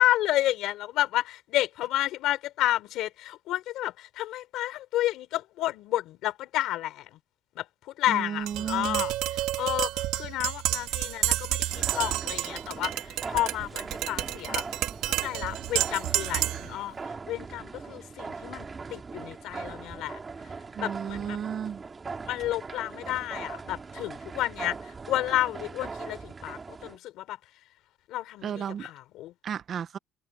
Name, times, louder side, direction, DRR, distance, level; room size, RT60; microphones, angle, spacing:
voice 1, 0.0-7.2 7.6-14.6 15.0-20.2 20.8-21.4 22.3-27.4 28.1-29.3, left 15 dB, 65° left, 4.0 m, -31 dB
voice 2, 8.1-9.0 20.7-21.8 28.4-28.9 29.4-30.0, right 8 dB, 35° right, 0.6 m, -33 dB
Tap, 8.5-16.7, right 15 dB, 75° right, 2.5 m, -30 dB
sound 1, 11.7-27.0, right 4 dB, 20° right, 2.0 m, -40 dB
cardioid pair, 175°, 0 cm